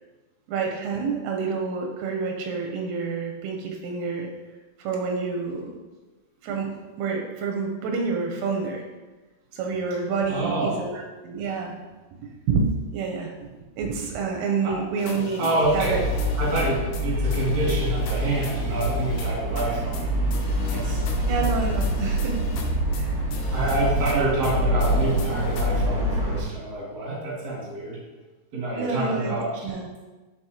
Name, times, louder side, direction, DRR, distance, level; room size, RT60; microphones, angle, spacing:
voice 1, 0.5-4.3 4.8-5.7 6.4-6.7 7.0-8.8 9.5-11.7 12.2-16.0 16.6-16.7 21.3-22.4 22.9-23.2 24.2-24.4 25.4-25.6 25.8-26.3 28.8-29.4 29.6-29.9, right 5 dB, 85° right, 2 dB, 3.2 m, -28 dB
voice 2, 10.3-10.9 14.6-14.7 15.4-16.0 16.4-20.1 20.6-21.3 23.5-28.0 28.5-29.5, right 2 dB, 40° right, -5 dB, 1.6 m, -27 dB
sound 1, 15.0-16.7 16.9-17.0 17.3-19.7 19.9-20.0 20.3-23.0 23.3-24.2 24.4-25.7, left 2 dB, 75° left, 3.0 m, -36 dB
sound 2, 15.9-26.4, equal, 65° right, 1.3 m, -25 dB
9.8 x 5.1 x 3.0 m, 1.2 s
omnidirectional pair, 6.0 m